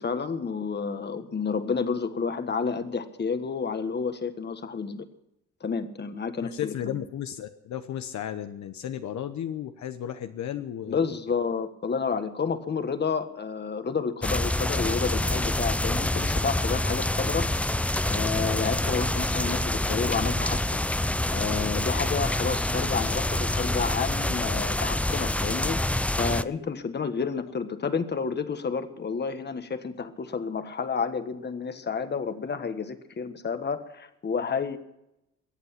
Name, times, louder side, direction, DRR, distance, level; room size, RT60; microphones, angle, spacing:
voice 1, 0.0-5.0 5.6-7.0 10.9-17.5 18.0-20.8 21.3-25.8 26.2-34.8, left 5 dB, 35° left, 9 dB, 1.4 m, -30 dB
voice 2, 6.4-11.0, left 10 dB, 65° left, 8 dB, 0.9 m, -34 dB
sound 1, 14.2-26.4, left 1 dB, 5° left, 0.4 m, -27 dB
22.5 x 8.2 x 5.8 m, 0.86 s
cardioid pair, 90°, 30 cm